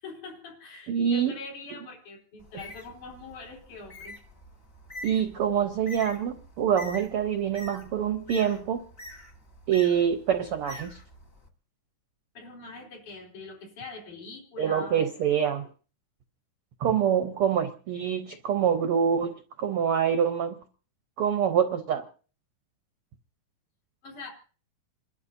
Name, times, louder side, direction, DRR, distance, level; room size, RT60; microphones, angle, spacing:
voice 1, 0.0-4.2 12.3-15.0 24.0-24.3, left 3 dB, 75° left, -1 dB, 4.9 m, -43 dB
voice 2, 0.9-1.3 5.0-8.8 9.7-11.0 14.6-15.7 16.8-20.6 21.2-22.0, right 8 dB, 75° right, 7 dB, 1.3 m, -25 dB
Bird, 2.4-11.5, left 1 dB, 45° left, 0.7 m, -46 dB
28.0 x 12.5 x 2.7 m, 0.38 s
omnidirectional pair, 3.6 m